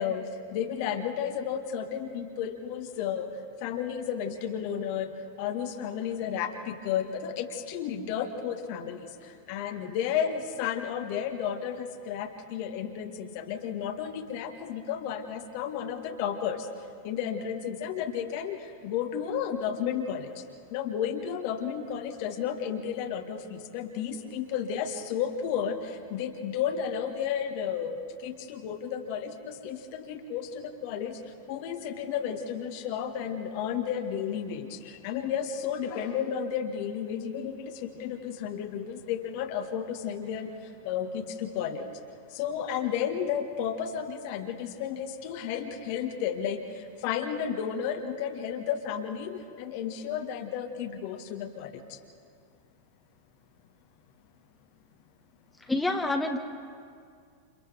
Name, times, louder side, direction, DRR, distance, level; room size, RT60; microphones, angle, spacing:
voice 1, 0.0-20.4 20.7-42.0 42.3-52.0, left 8 dB, 45° left, 5 dB, 1.5 m, -33 dB
voice 2, 55.7-56.4, left 2 dB, 5° left, 4 dB, 1.4 m, -27 dB
29.5 x 28.5 x 3.5 m, 2.2 s
figure-of-eight pair, 90°, 0 cm